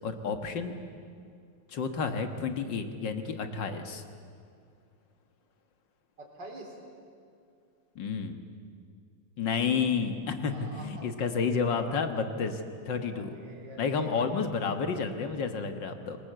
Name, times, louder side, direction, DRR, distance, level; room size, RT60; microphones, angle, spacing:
voice 1, 0.0-0.7 1.7-4.0 8.0-8.4 9.4-13.4 13.8-16.2, left 5 dB, 45° left, 7 dB, 1.7 m, -30 dB
voice 2, 6.2-6.8 10.5-11.1 13.1-14.2, right 2 dB, 35° right, 0 dB, 4.5 m, -46 dB
27.0 x 20.0 x 8.1 m, 2.3 s
omnidirectional pair, 3.4 m